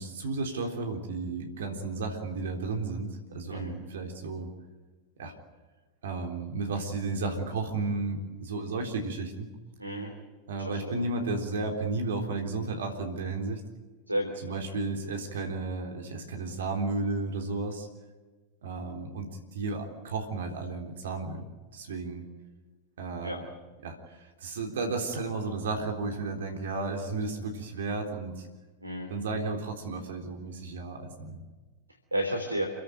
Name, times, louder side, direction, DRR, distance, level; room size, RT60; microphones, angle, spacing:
voice 1, 0.0-4.5 5.2-5.3 6.0-9.5 10.5-13.6 14.4-17.9 18.6-21.5 21.7-22.2 23.0-23.4 23.8-28.5 29.1-31.4, right 3 dB, 60° right, 3 dB, 3.7 m, -33 dB
voice 2, 9.8-10.1 10.6-11.1 14.1-14.6 23.2-23.4 28.8-29.1 32.1-32.7, right 1 dB, 85° right, 4 dB, 3.3 m, -32 dB
28.5 x 16.5 x 9.3 m, 1.3 s
figure-of-eight pair, 90°, 0 cm